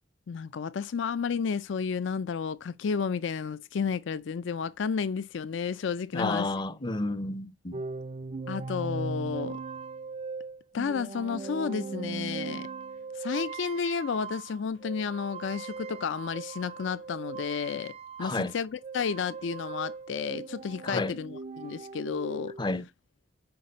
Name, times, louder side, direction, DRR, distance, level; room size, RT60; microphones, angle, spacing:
voice 1, 0.3-6.5 8.5-9.6 10.7-12.7 13.1-17.9 18.2-22.6, left 6 dB, 70° left, 0.4 m, -32 dB
voice 2, 6.1-7.8 18.2-18.5 20.8-21.1 22.6-22.8, left 2 dB, 25° left, 0.6 m, -31 dB
sound 1, 7.7-18.6 18.8-22.7, right 4 dB, 30° right, 0.4 m, -39 dB
5.8 x 4.7 x 5.1 m
head